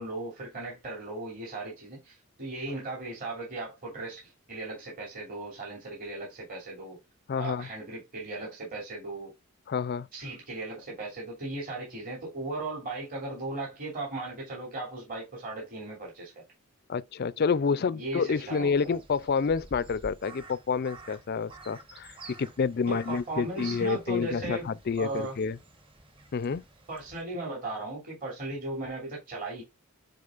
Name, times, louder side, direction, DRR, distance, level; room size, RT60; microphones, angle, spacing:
voice 1, 0.0-7.0 7.4-9.3 10.1-16.4 17.7-19.0 22.8-25.4 26.9-29.6, right 2 dB, 40° right, 2.9 m, -37 dB
voice 2, 7.3-7.7 9.7-10.1 16.9-25.6 26.3-26.6, left 5 dB, 45° left, 0.4 m, -29 dB
Crow, 18.3-27.2, right 2 dB, 25° right, 1.1 m, -50 dB
9.6 x 4.0 x 2.5 m
head